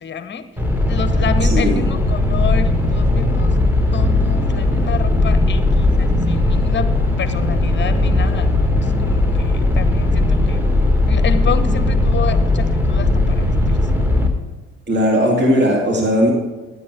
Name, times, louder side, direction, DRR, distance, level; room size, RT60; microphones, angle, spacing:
voice 1, 0.0-0.5 0.9-3.6 3.9-10.7 11.1-13.9, left 6 dB, 30° left, 11 dB, 1.0 m, -29 dB
sound 1, 0.6-14.3, left 2 dB, 5° right, 2.1 m, -17 dB
voice 2, 1.5-1.8 14.9-16.3, equal, 30° right, 0 dB, 2.6 m, -17 dB
16.0 x 11.0 x 3.4 m, 1.2 s
figure-of-eight pair, 55°, 37 cm